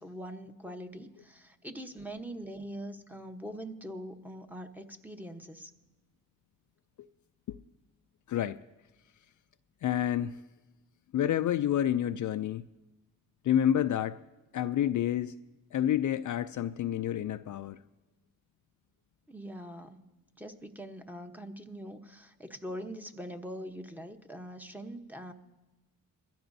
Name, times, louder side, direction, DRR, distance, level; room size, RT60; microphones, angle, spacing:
voice 1, 0.0-5.7 19.3-20.0 20.4-25.3, equal, 5° right, 6 dB, 1.0 m, -43 dB
voice 2, 8.3-8.6 9.8-10.4 11.1-12.6 13.4-14.2 14.5-15.3 15.7-17.8, left 10 dB, 55° left, 11 dB, 0.4 m, -29 dB
21.0 x 14.5 x 2.7 m, 1.1 s
cardioid pair, 75°, 36 cm